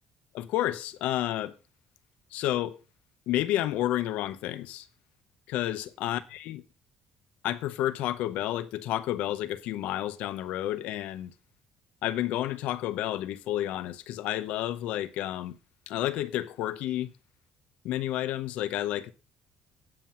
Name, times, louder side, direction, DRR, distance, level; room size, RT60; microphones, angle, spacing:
voice 1, 0.3-1.5 2.3-2.8 3.3-4.9 5.5-6.6 7.4-11.3 12.0-15.6 15.9-17.1 17.8-19.1, left 13 dB, 75° left, 0.8 m, -30 dB
8.9 x 7.5 x 5.6 m
cardioid pair, 170°, 2 cm